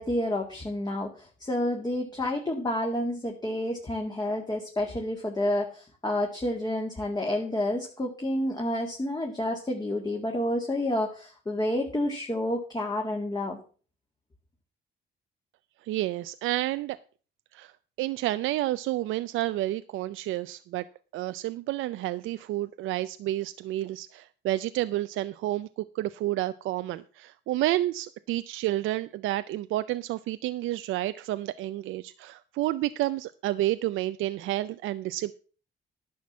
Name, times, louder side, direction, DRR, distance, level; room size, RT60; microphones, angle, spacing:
voice 1, 0.0-13.6, left 1 dB, 20° left, 0 dB, 2.1 m, -29 dB
voice 2, 15.8-17.0 17.5-17.7 18.0-20.8 21.1-25.7 25.9-35.3, right 15 dB, 85° right, 13 dB, 0.5 m, -30 dB
11.0 x 5.9 x 7.1 m, 0.39 s
cardioid pair, 90°, 20 cm